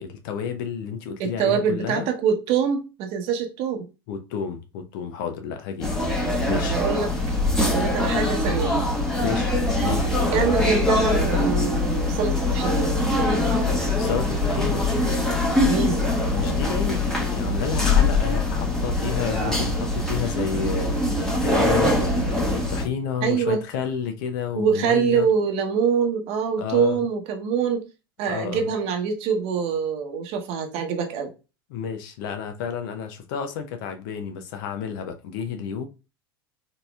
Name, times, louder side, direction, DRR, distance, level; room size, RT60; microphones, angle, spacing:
voice 1, 0.0-2.1 4.1-6.8 9.2-10.1 14.0-14.9 16.3-25.3 26.6-27.0 28.3-28.7 31.7-35.9, left 7 dB, 65° left, 0.7 m, -31 dB
voice 2, 1.2-3.9 6.7-7.1 7.6-8.8 10.3-12.9 15.6-16.0 23.2-23.6 24.6-27.8 28.2-31.3, right 6 dB, 55° right, 0.9 m, -24 dB
sound 1, 5.8-22.9, left 2 dB, 5° left, 1.1 m, -23 dB
4.0 x 2.7 x 2.3 m
hypercardioid pair, 95°, 12 cm